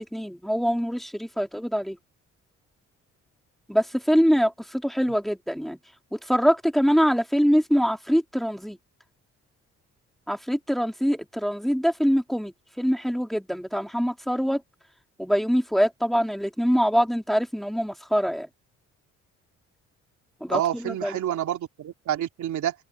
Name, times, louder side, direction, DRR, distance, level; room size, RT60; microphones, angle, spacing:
voice 1, 0.0-2.0 3.7-5.8 6.1-8.8 10.3-14.6 15.2-18.5 20.4-21.1, equal, ahead, 3.2 m, -24 dB
voice 2, 20.5-22.7, right 11 dB, 70° right, 3.2 m, -28 dB
cardioid pair, 90°, 30 cm